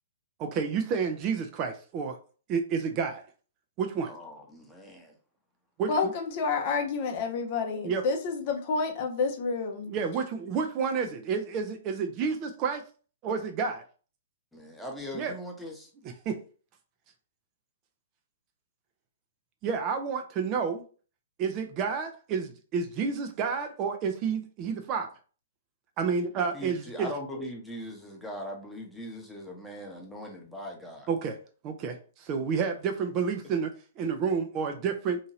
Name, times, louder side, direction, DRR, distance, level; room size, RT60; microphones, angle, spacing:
voice 1, 0.4-2.2 2.5-3.2 3.8-4.1 5.8-5.9 7.8-8.0 9.9-12.8 13.2-13.8 15.1-15.4 16.0-16.4 19.6-20.8 21.4-25.1 26.0-27.1 31.1-31.4 31.6-35.2, right 6 dB, 30° right, 5 dB, 0.4 m, -30 dB
voice 2, 4.1-5.1 14.5-15.9 26.5-31.1, equal, 5° left, -1 dB, 0.8 m, -40 dB
voice 3, 5.9-9.9, left 4 dB, 40° left, 4 dB, 0.6 m, -29 dB
2.8 x 2.7 x 2.7 m, 0.38 s
figure-of-eight pair, 115°, 0 cm